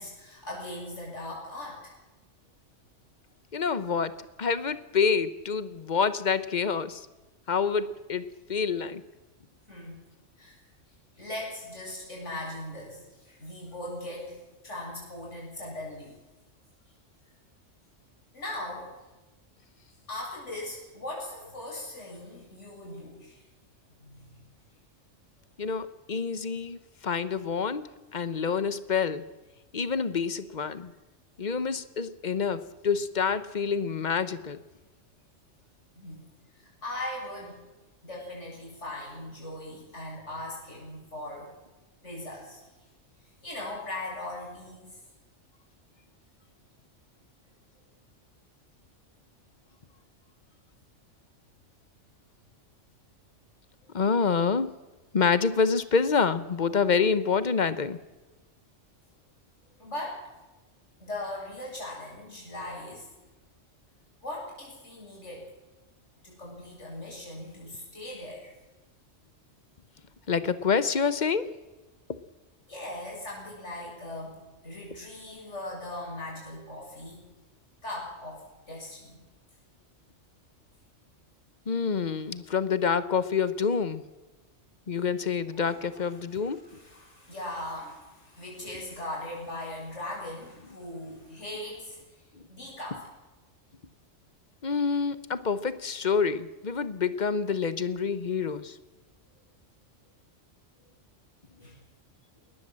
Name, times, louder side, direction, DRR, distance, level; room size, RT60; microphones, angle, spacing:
voice 1, 0.0-1.9 9.7-10.0 10.4-10.6 11.2-14.4 14.6-16.1 18.3-18.9 20.1-23.4 24.0-24.4 36.0-36.2 36.5-37.6 38.0-41.5 42.0-42.6 43.4-45.0 59.8-60.2 61.0-63.1 64.2-65.4 66.2-68.5 72.7-77.2 77.8-79.2 85.5-92.0 92.5-93.1 101.6-101.8, left 1 dB, 70° left, -3 dB, 7.9 m, -39 dB
voice 2, 3.5-4.1 4.4-7.1 7.5-9.0 25.6-26.8 27.0-29.2 29.7-30.9 31.4-34.6 53.9-54.7 55.1-58.0 70.3-71.5 81.7-84.0 84.9-86.6 94.6-98.7, left 5 dB, 40° left, 14 dB, 1.1 m, -27 dB
21.0 x 19.0 x 7.6 m, 1.1 s
omnidirectional pair, 1.3 m